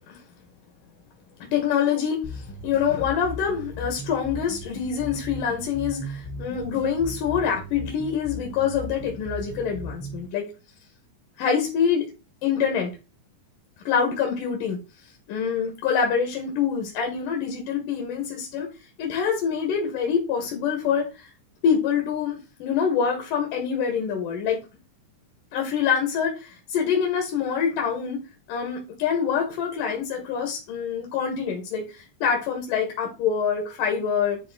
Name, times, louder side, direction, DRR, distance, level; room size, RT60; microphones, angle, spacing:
voice 1, 1.4-10.5 11.4-12.1 12.4-12.9 13.8-14.8 15.3-18.7 19.0-21.3 21.6-24.6 25.5-28.2 28.5-34.4, left 7 dB, 75° left, 2 dB, 3.0 m, -25 dB
sound 1, 2.2-10.3, left 1 dB, 5° left, 1.2 m, -37 dB
10.5 x 3.6 x 3.8 m, 0.28 s
omnidirectional pair, 3.9 m